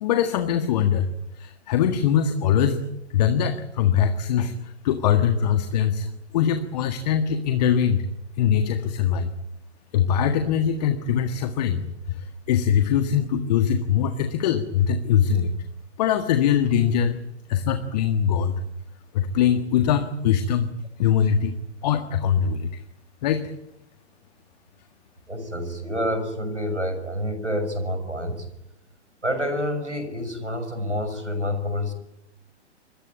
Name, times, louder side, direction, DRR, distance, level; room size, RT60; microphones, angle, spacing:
voice 1, 0.0-1.1 1.4-2.8 3.1-6.1 6.3-8.1 8.4-9.3 9.9-15.5 16.0-17.2 17.5-18.6 19.1-20.7 21.0-21.6 21.8-22.8 23.2-23.5, left 8 dB, 35° left, 8 dB, 1.7 m, -22 dB
voice 2, 25.3-28.5 29.2-31.9, equal, 90° right, 9 dB, 6.4 m, -28 dB
26.5 x 22.5 x 9.0 m, 0.86 s
figure-of-eight pair, 120°, 34 cm